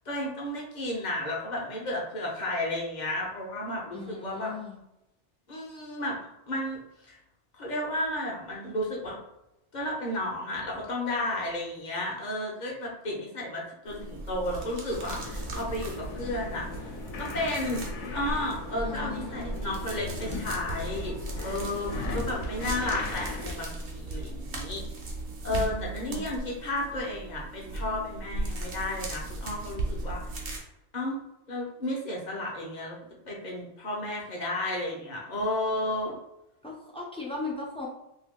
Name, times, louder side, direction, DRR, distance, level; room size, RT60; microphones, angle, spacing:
voice 1, 0.1-4.5 5.5-7.2 7.5-9.2 9.7-16.9 17.2-21.2 21.4-24.8 25.4-30.6 30.9-31.2 31.5-33.0 33.2-36.2, left 1 dB, 40° left, -2 dB, 0.8 m, -33 dB
voice 2, 3.9-4.8 18.7-19.6 25.5-26.3 36.6-37.9, left 3 dB, 10° left, -3 dB, 0.4 m, -38 dB
sound 1, 13.9-30.6, right 2 dB, 55° right, 0.9 m, -37 dB
sound 2, 14.9-23.5, left 3 dB, 75° left, 1.0 m, -38 dB
2.7 x 2.7 x 3.6 m, 0.89 s
omnidirectional pair, 1.2 m